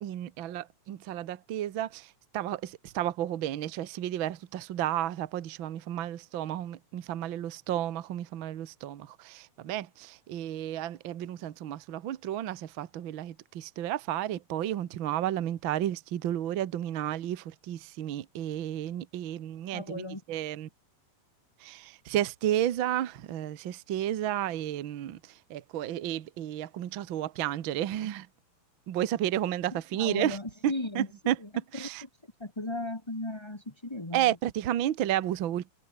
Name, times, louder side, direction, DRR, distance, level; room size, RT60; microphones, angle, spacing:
voice 1, 0.0-2.1 2.3-20.7 21.6-25.2 25.5-28.3 28.9-30.4 30.9-31.4 31.7-32.0 34.1-35.7, right 12 dB, 80° right, 1.1 m, -32 dB
voice 2, 19.7-20.4 30.0-31.1 31.4-31.9 32.4-34.4, left 2 dB, 10° left, 1.8 m, -36 dB
omnidirectional pair, 4.0 m